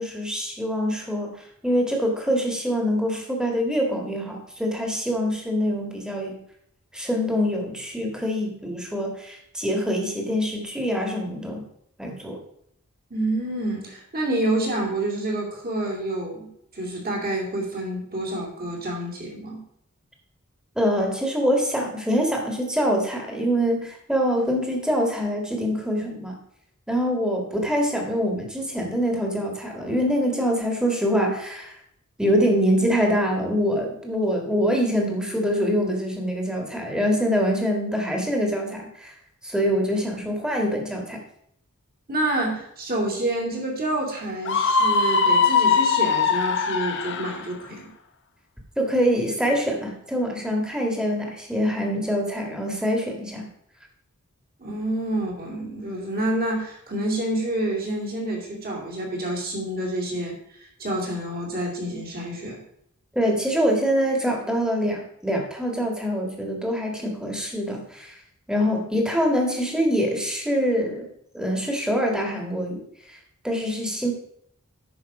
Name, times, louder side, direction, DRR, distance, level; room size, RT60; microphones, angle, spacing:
voice 1, 0.0-6.4 6.9-11.6 12.0-12.4 20.7-26.4 26.9-31.7 32.2-39.1 39.4-41.2 48.8-53.5 63.1-68.2 68.5-71.1 71.3-73.2 73.4-74.1, equal, 5° right, 1 dB, 1.7 m, -24 dB
voice 2, 13.1-19.6 40.2-40.3 42.1-47.9 54.6-62.6, right 1 dB, 45° right, -1 dB, 2.6 m, -28 dB
Screaming, 44.5-47.4, left 5 dB, 55° left, 0.8 m, -21 dB
9.4 x 6.0 x 4.9 m, 0.71 s
head